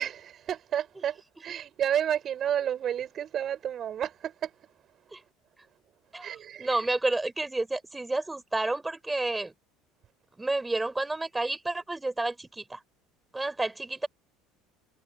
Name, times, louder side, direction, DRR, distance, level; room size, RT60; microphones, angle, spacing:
voice 1, 0.0-4.5 6.2-6.8, right 9 dB, 45° right, 5.0 m, -31 dB
voice 2, 6.1-9.5 10.4-12.8 13.3-14.1, right 2 dB, 15° right, 4.7 m, -30 dB
hypercardioid pair, 65°, 0 cm